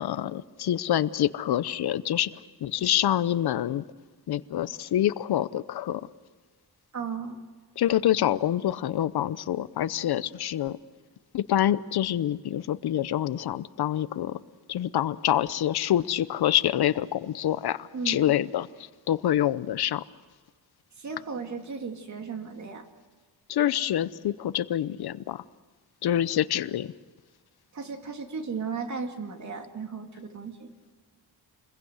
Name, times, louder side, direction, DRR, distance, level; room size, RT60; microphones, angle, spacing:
voice 1, 0.0-2.3 2.6-3.8 4.3-6.0 7.8-10.8 11.3-14.4 14.7-18.7 19.1-20.0 23.5-25.4 26.0-26.9, left 11 dB, 75° left, 16 dB, 0.8 m, -26 dB
voice 2, 6.9-7.4 17.9-18.3 21.0-22.9 27.7-30.7, right 5 dB, 45° right, 5 dB, 2.5 m, -35 dB
28.5 x 22.0 x 8.0 m, 1.5 s
wide cardioid pair, 170°, 38 cm